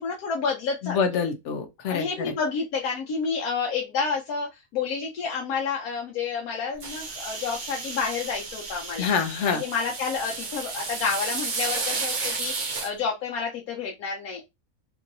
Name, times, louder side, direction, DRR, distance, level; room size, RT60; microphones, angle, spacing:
voice 1, 0.0-1.0 1.8-9.1 9.5-12.5 12.8-14.4, left 5 dB, 80° left, 1.1 m, -29 dB
voice 2, 0.8-2.3 9.0-9.6, left 6 dB, 60° left, 0.8 m, -26 dB
sound 1, 6.8-12.9, right 4 dB, 70° right, 0.4 m, -32 dB
3.0 x 2.7 x 2.6 m
omnidirectional pair, 1.5 m